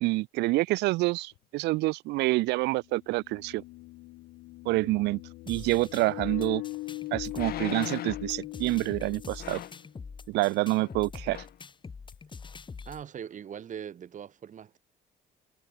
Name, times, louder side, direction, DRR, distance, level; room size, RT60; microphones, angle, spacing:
voice 1, 0.0-3.6 4.6-5.2 5.5-6.6 7.1-9.6 10.3-11.4, right 21 dB, 90° right, 1.5 m, -27 dB
sound 1, 1.4-1.5 2.9-9.8, left 20 dB, 90° left, 4.3 m, -40 dB
sound 2, 5.5-13.0, left 5 dB, 30° left, 5.1 m, -44 dB
sound 3, 6.3-6.4 7.3-8.3 9.4-9.9 10.8-11.0 11.3-11.6 12.1-12.2, left 12 dB, 65° left, 4.3 m, -39 dB
voice 2, 12.8-14.8, right 8 dB, 50° right, 7.8 m, -41 dB
cardioid pair, 110°, 17 cm